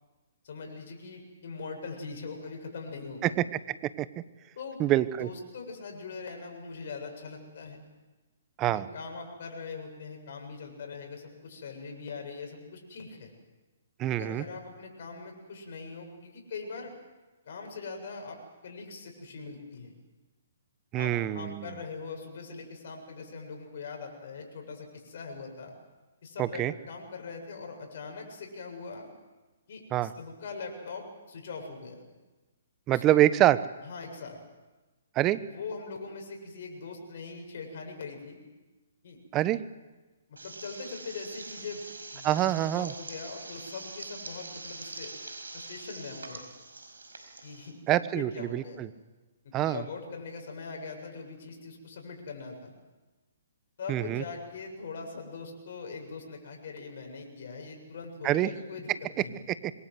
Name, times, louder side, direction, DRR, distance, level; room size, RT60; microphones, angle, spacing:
voice 1, 0.4-3.4 4.6-4.8 5.2-7.8 8.7-13.3 14.1-16.9 17.5-19.9 20.9-25.7 26.2-29.1 29.7-32.0 32.9-33.2 33.8-34.4 35.5-38.4 39.0-39.2 40.3-41.9 42.1-45.1 45.5-46.4 47.4-47.8 48.1-48.8 49.6-52.7 53.8-59.5, left 4 dB, 60° left, 2 dB, 7.5 m, -41 dB
voice 2, 3.7-4.1 4.8-5.3 8.6-8.9 14.0-14.4 20.9-21.7 26.4-26.7 29.9-30.1 32.9-33.6 35.1-35.4 39.3-39.6 42.2-42.9 47.9-48.9 49.5-49.8 53.9-54.2 58.2-58.5 59.5-59.7, right 14 dB, 25° right, 15 dB, 1.2 m, -26 dB
sound 1, 40.4-47.7, right 3 dB, 85° right, 5.2 m, -44 dB
26.5 x 23.5 x 7.9 m, 1.2 s
hypercardioid pair, 135°, 0 cm